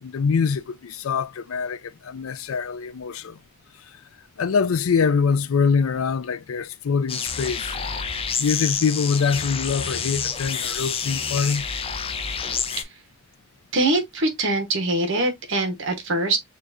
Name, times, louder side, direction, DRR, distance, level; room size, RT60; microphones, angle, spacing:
voice 1, 0.0-3.4 4.4-7.8 8.4-11.7, left 5 dB, 80° left, 0.4 m, -24 dB
sound 1, 7.1-12.8, left 6 dB, 30° left, 0.5 m, -28 dB
voice 2, 13.7-16.4, right 2 dB, 65° right, 1.0 m, -23 dB
6.4 x 2.4 x 2.5 m
head